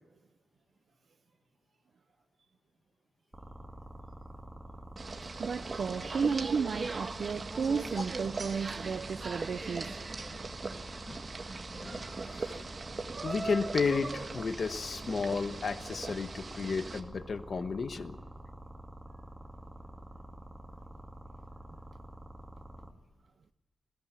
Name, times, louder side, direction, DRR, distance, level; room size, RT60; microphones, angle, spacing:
sound 1, 3.3-22.9, right 1 dB, 15° right, 2.9 m, -47 dB
sound 2, 5.0-17.0, right 3 dB, 40° right, 1.7 m, -40 dB
voice 1, 5.4-10.0, right 6 dB, 65° right, 0.6 m, -33 dB
voice 2, 11.8-12.7 13.2-18.2, left 5 dB, 55° left, 1.2 m, -33 dB
21.0 x 16.5 x 9.3 m
wide cardioid pair, 130°, 0 cm